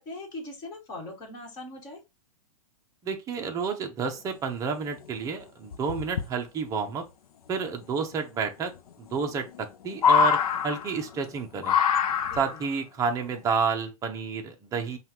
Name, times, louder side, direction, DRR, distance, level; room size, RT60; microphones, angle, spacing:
voice 1, 0.0-2.0 12.2-12.4, left 2 dB, 20° left, 1.8 m, -40 dB
voice 2, 3.0-7.1 7.5-8.7 9.0-11.8 12.4-15.0, right 5 dB, 20° right, 0.7 m, -30 dB
sound 1, 4.6-4.7 5.0-5.1 5.7-6.3 7.8-7.9 9.1-9.6 9.9-11.2 11.6-12.6 13.6-13.7, left 8 dB, 80° left, 0.6 m, -24 dB
5.4 x 2.4 x 2.9 m
hypercardioid pair, 145°, 19 cm